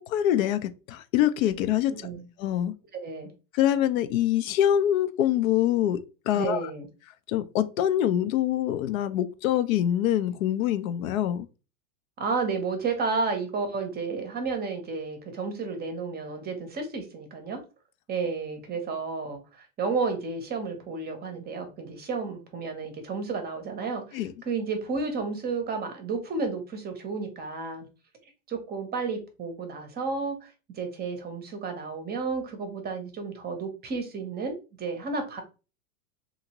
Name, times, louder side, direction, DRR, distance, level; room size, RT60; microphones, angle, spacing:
voice 1, 0.1-1.9 2.4-2.7 3.5-6.0 6.3-6.7 7.3-11.5 24.1-24.3, left 11 dB, 65° left, 0.5 m, -25 dB
voice 2, 6.3-6.9 12.2-17.6 18.1-27.9 28.5-30.5 30.7-35.4, right 4 dB, 20° right, 0.7 m, -32 dB
2.8 x 2.6 x 2.8 m
hypercardioid pair, 115°, 44 cm